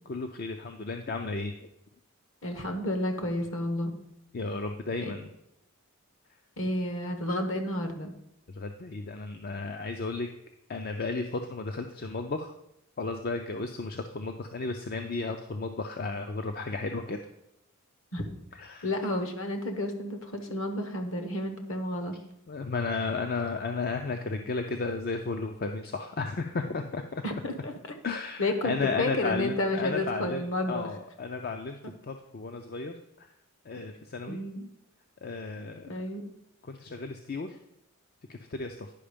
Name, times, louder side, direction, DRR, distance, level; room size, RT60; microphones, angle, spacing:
voice 1, 0.1-1.7 4.3-5.3 8.5-10.3 10.7-12.5 13.0-17.2 18.6-18.9 22.5-27.2 28.0-30.4 30.7-32.9 33.7-34.4 35.2-35.9 36.7-37.6 38.3-38.9, left 3 dB, 40° left, 6 dB, 0.5 m, -33 dB
voice 2, 2.4-4.0 5.0-5.1 6.6-8.1 18.1-18.2 18.8-22.2 27.2-27.7 28.4-30.9 34.3-34.7 35.8-36.3, left 1 dB, 60° left, 6 dB, 1.2 m, -31 dB
10.0 x 5.4 x 5.1 m, 0.80 s
head